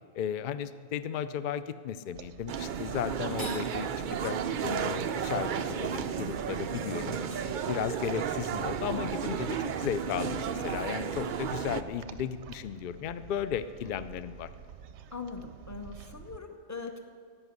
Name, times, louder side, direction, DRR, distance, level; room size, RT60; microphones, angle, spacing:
voice 1, 0.1-3.9 4.2-7.2 7.7-14.5, left 9 dB, 80° left, 14 dB, 0.4 m, -35 dB
sound 1, 2.1-16.4, right 8 dB, 65° right, 0.8 m, -48 dB
sound 2, 2.5-11.8, right 7 dB, 90° right, 0.4 m, -33 dB
sound 3, 3.2-3.7 6.6-6.7 7.1-8.5, left 2 dB, 65° left, 2.6 m, -48 dB
voice 2, 15.1-17.0, left 4 dB, 15° left, 5 dB, 0.7 m, -41 dB
13.5 x 5.6 x 9.4 m, 2.2 s
omnidirectional pair, 1.5 m